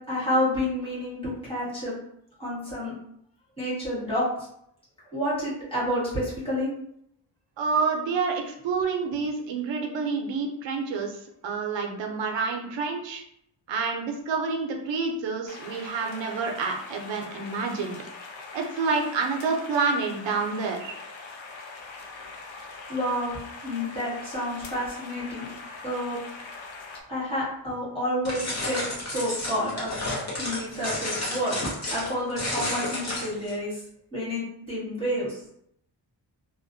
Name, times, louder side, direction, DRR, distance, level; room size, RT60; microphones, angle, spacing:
voice 1, 0.1-1.9 2.4-2.9 3.6-4.5 5.1-6.7 22.9-23.4 23.6-25.5 25.8-26.2 27.1-29.9 30.4-31.6 31.9-33.8 34.1-35.4, equal, 10° left, -9 dB, 1.2 m, -29 dB
voice 2, 7.6-11.1 11.4-13.2 13.7-17.9 18.5-21.0, right 4 dB, 70° right, 3 dB, 0.5 m, -28 dB
sound 1, 15.5-27.0, left 3 dB, 80° left, 0.5 m, -42 dB
sound 2, 28.2-33.5, left 1 dB, 35° left, 0.7 m, -31 dB
2.3 x 2.1 x 2.5 m, 0.72 s
wide cardioid pair, 170°, 46 cm